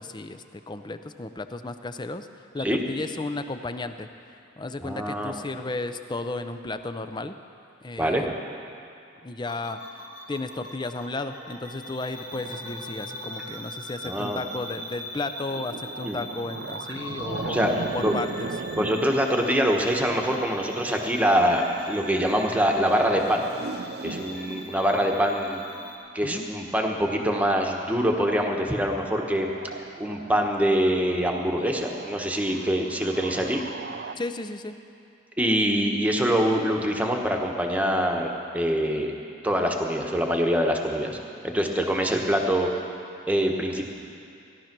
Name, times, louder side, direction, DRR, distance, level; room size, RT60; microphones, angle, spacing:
voice 1, 0.0-2.3 2.5-4.1 4.6-7.4 7.8-8.4 9.2-9.8 10.3-18.5 18.8-18.9 26.2-26.5 34.2-34.8, left 2 dB, 25° left, 9 dB, 0.5 m, -34 dB
voice 2, 4.8-5.3 8.0-8.2 14.0-14.4 16.0-16.2 17.5-17.7 18.0-18.3 18.7-23.4 24.0-25.6 26.1-29.5 30.0-33.6 35.4-39.1 39.4-41.2 41.4-42.7 43.3-43.8, equal, 10° right, 1 dB, 1.1 m, -24 dB
sound 1, 9.4-26.0, equal, 70° left, 3.1 m, -41 dB
sound 2, 15.5-21.9 22.9-25.5 29.0-34.1, right 4 dB, 55° right, 0.5 m, -38 dB
16.5 x 11.5 x 6.0 m, 2.5 s
head